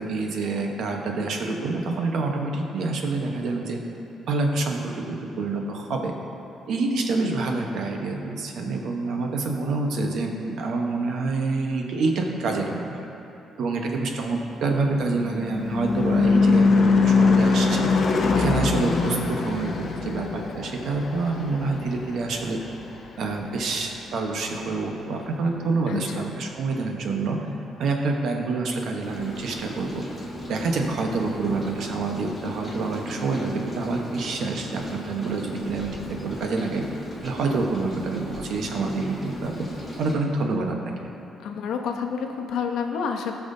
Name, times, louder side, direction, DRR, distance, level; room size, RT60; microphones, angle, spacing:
voice 1, 0.0-3.8 4.3-6.1 6.7-13.1 13.6-17.9 18.3-22.6 23.2-27.5 27.8-30.0 30.5-36.8 37.2-39.7 40.0-41.1, right 3 dB, 65° right, 2 dB, 1.0 m, -27 dB
Car passing by / Truck / Engine, 14.7-23.4, left 4 dB, 45° left, 0.7 m, -23 dB
voice 2, 25.9-26.3 41.4-43.3, left 6 dB, 80° left, 3 dB, 0.9 m, -29 dB
Rain, 29.0-40.2, equal, 10° left, 2.0 m, -37 dB
17.0 x 5.9 x 2.7 m, 3.0 s
cardioid pair, 130°, 0 cm